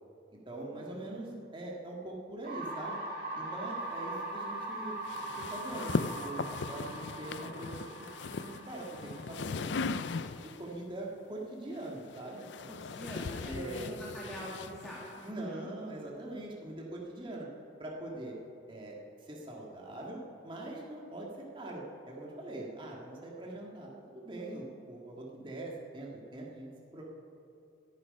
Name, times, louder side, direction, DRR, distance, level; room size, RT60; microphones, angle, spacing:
voice 1, 0.5-3.0 3.3-5.0 5.4-7.8 8.3-10.0 10.4-12.4 13.4-14.0 15.2-17.5 17.8-18.4 18.7-27.0, right 1 dB, 25° right, -3 dB, 1.9 m, -42 dB
sound 1, 2.4-10.3, right 2 dB, 50° right, 3.3 m, -41 dB
sound 2, 5.1-10.7 11.7-15.3, left 4 dB, 75° left, 0.5 m, -38 dB
voice 2, 12.7-15.7, equal, 5° left, -7 dB, 2.0 m, -44 dB
19.5 x 10.5 x 5.4 m, 2.7 s
head